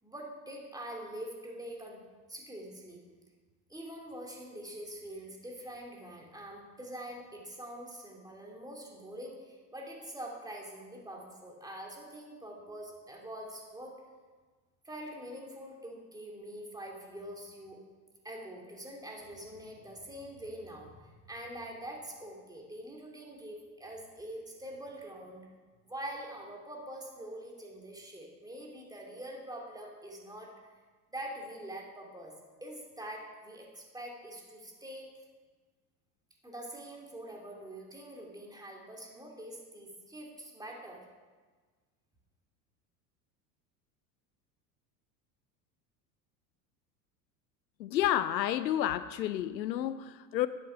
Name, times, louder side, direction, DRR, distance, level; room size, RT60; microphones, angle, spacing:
voice 1, 0.0-2.0 2.3-3.0 3.7-14.0 14.8-17.8 18.2-25.5 25.9-30.5 31.1-32.3 32.6-35.1 36.4-41.1, right 1 dB, 5° right, -1 dB, 2.7 m, -44 dB
voice 2, 47.8-50.5, left 12 dB, 90° left, 15 dB, 0.6 m, -30 dB
10.0 x 8.0 x 5.7 m, 1.4 s
hypercardioid pair, 80°, 50 cm